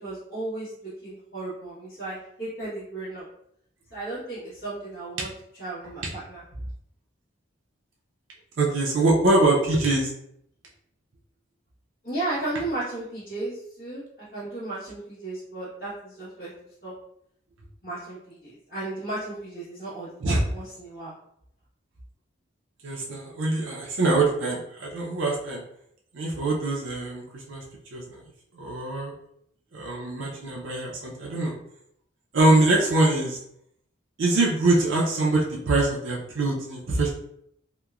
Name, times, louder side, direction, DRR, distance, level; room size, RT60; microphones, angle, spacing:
voice 1, 0.0-3.3 3.9-5.3 5.6-6.4 12.0-16.5 16.8-16.9 17.8-21.1, right 2 dB, 55° left, -11 dB, 1.1 m, -34 dB
voice 2, 8.6-10.1 20.2-20.4 22.8-25.6 26.1-27.6 27.9-28.2 28.5-29.1 29.7-31.5 32.3-33.4 34.2-37.1, right 2 dB, 85° right, -3 dB, 0.5 m, -23 dB
2.9 x 2.1 x 2.3 m, 0.72 s
head